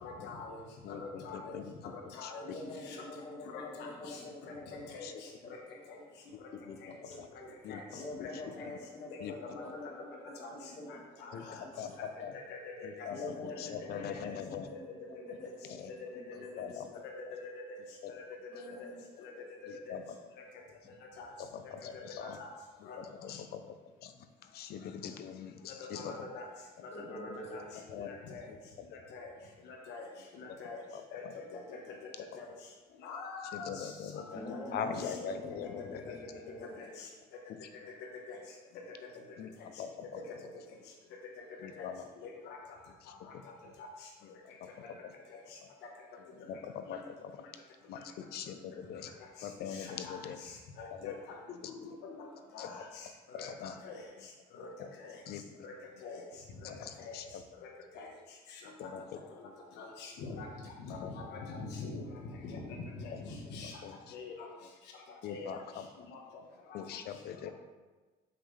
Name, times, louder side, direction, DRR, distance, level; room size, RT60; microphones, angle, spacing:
voice 1, 0.0-0.6 0.9-1.5 2.1-2.4 2.9-3.0 3.5-4.2 4.9-5.1 7.7-7.8 8.2-8.3 8.6-8.7 9.4-9.5 10.4-10.5 11.2-11.6 12.5-13.1 17.0-17.6 18.8-18.9 19.6-19.7 21.2-21.3 22.2-22.5 22.9-23.0 25.8-26.4 26.8-27.6 28.1-28.4 29.1-29.3 29.9-30.0 30.3-30.8 31.1-31.2 31.5-31.8 32.3-32.5 33.0-33.9 34.5-35.1 36.1-36.2 36.8-37.1 38.3-38.4 41.8-41.9 42.2-42.6 46.9-47.0 49.7-50.2 50.4-50.5 50.8-51.1 51.5-51.6 52.0-52.2 52.5-52.8 53.3-54.0 54.6-54.7 55.0-55.1 55.6-55.7 56.0-56.2 57.0-57.1 57.9-58.1 58.8-58.9 59.8-60.5 60.8-62.0 62.4-62.6 63.0-63.1 63.5-63.7 64.1-64.5 65.3-65.6 66.1-66.2, left 4 dB, 85° left, 1 dB, 1.4 m, -44 dB
voice 2, 0.8-1.6 2.2-2.3 5.0-5.1 6.7-7.0 7.6-8.1 9.2-9.3 11.3-11.4 11.8-11.9 12.2-12.3 12.8-14.7 16.6-16.9 19.7-20.0 21.4-22.4 23.0-24.1 24.5-26.2 27.9-28.1 31.2-31.3 33.5-34.2 34.7-36.2 39.4-39.5 39.8-39.9 41.6-42.0 46.5-47.0 47.9-49.1 49.4-50.4 51.0-51.1 52.6-52.7 53.3-53.7 55.3-55.4 56.6-57.2 58.8-59.0 60.9-61.1 63.8-63.9 65.2-65.6 66.7-67.5, left 8 dB, 70° left, 9 dB, 0.7 m, -42 dB
voice 3, 2.4-7.5 7.9-12.0 13.1-17.0 17.3-17.4 18.5-19.0 19.3-19.6 24.1-24.2 26.9-28.2 34.3-37.2, left 1 dB, 40° left, -3 dB, 2.0 m, -47 dB
7.6 x 5.8 x 3.4 m, 1.3 s
cardioid pair, 110°, 17 cm